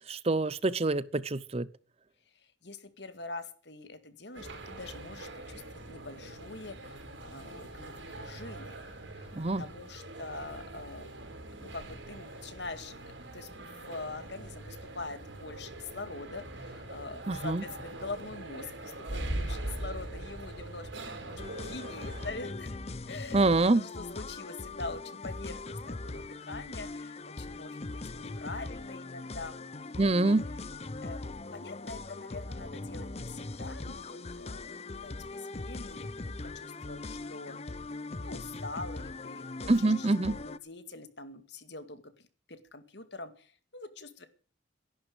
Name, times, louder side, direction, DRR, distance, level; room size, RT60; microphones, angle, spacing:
voice 1, 0.1-1.7 9.3-9.6 17.3-17.6 23.3-23.8 30.0-30.4 39.7-40.4, right 2 dB, 30° right, 0.7 m, -26 dB
voice 2, 2.3-8.8 9.1-9.3 9.6-11.1 11.6-13.0 13.3-22.8 23.1-29.6 29.9-30.4 31.0-31.2 31.5-37.6 38.2-42.0 42.5-44.3, left 3 dB, 65° left, 2.1 m, -44 dB
sound 1, 4.3-22.3, right 1 dB, 80° right, 5.0 m, -42 dB
sound 2, 21.4-40.6, left 2 dB, 35° left, 0.7 m, -40 dB
13.5 x 11.5 x 7.9 m
head